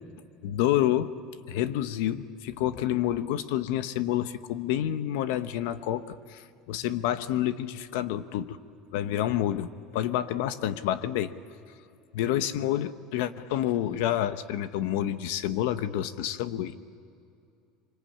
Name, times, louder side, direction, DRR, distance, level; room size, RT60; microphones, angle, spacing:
voice 1, 0.4-1.1 1.5-8.6 8.9-11.3 12.1-16.7, left 12 dB, 75° left, 12 dB, 1.1 m, -28 dB
26.0 x 24.5 x 8.8 m, 2.5 s
cardioid pair, 165°, 0 cm